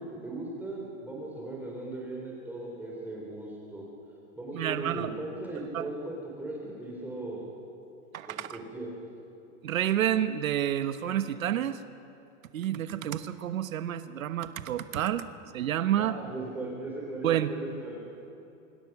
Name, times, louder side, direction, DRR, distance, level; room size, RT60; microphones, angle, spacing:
voice 1, 0.0-3.8 4.4-7.5 8.2-8.9 16.0-18.0, right 2 dB, 5° right, -3 dB, 3.5 m, -38 dB
voice 2, 4.5-5.1 5.7-5.8 8.1-8.5 9.6-11.8 12.5-15.3 15.5-16.2 17.2-17.5, right 11 dB, 90° right, 10 dB, 1.3 m, -29 dB
25.5 x 24.5 x 6.0 m, 2.8 s
supercardioid pair, 155°, 40 cm